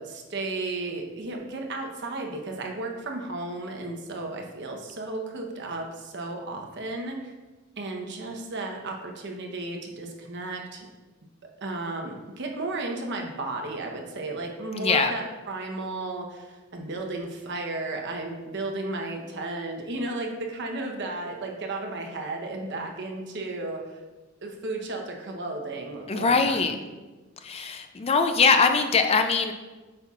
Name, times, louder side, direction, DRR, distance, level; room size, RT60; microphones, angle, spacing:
voice 1, 0.0-7.3 7.8-10.9 11.6-24.0 24.4-26.8, right 2 dB, 60° right, 2 dB, 1.0 m, -34 dB
voice 2, 14.8-15.1 26.1-26.8 27.4-29.5, left 4 dB, 30° left, 7 dB, 0.4 m, -22 dB
8.0 x 5.5 x 2.4 m, 1.2 s
head